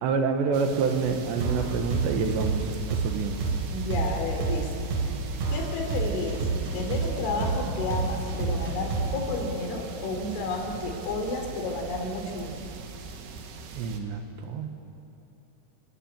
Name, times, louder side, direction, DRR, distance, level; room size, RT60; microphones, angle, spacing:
voice 1, 0.0-3.4 13.7-14.7, right 5 dB, 70° right, 5 dB, 3.4 m, -28 dB
sound 1, 0.5-14.0, right 5 dB, 90° right, 4.3 m, -42 dB
sound 2, 1.4-9.3, right 4 dB, 45° right, 4.6 m, -28 dB
voice 2, 3.7-4.8 5.5-6.5 6.7-12.6, left 3 dB, 75° left, 2 dB, 5.9 m, -31 dB
28.5 x 18.0 x 9.0 m, 2.8 s
omnidirectional pair, 5.5 m